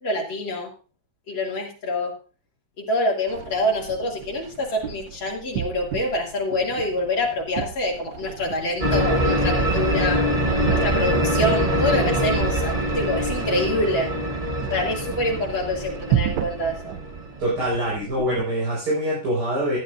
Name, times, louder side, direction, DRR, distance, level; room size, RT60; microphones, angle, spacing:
voice 1, 0.0-0.7 1.3-2.1 2.8-10.2 10.7-14.1 14.7-17.0, left 1 dB, 80° left, -2 dB, 3.2 m, -26 dB
sound 1, 3.3-18.4, right 11 dB, 75° right, 1.3 m, -33 dB
sound 2, 8.8-17.7, equal, 25° right, 0.8 m, -24 dB
voice 2, 17.4-19.8, right 1 dB, 55° right, -6 dB, 5.4 m, -24 dB
14.5 x 10.5 x 2.6 m, 0.37 s
omnidirectional pair, 2.1 m